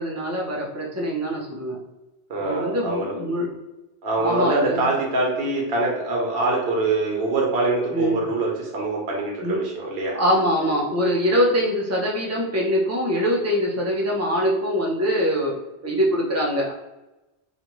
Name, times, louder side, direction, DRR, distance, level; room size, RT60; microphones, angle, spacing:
voice 1, 0.0-1.8 2.4-3.5 4.2-4.9 7.9-8.2 9.4-9.6 10.2-15.5 15.8-16.7, equal, 20° right, -2 dB, 0.4 m, -23 dB
voice 2, 2.3-3.1 4.0-10.2, right 2 dB, 60° right, -2 dB, 0.9 m, -24 dB
2.8 x 2.4 x 2.9 m, 1.0 s
omnidirectional pair, 1.1 m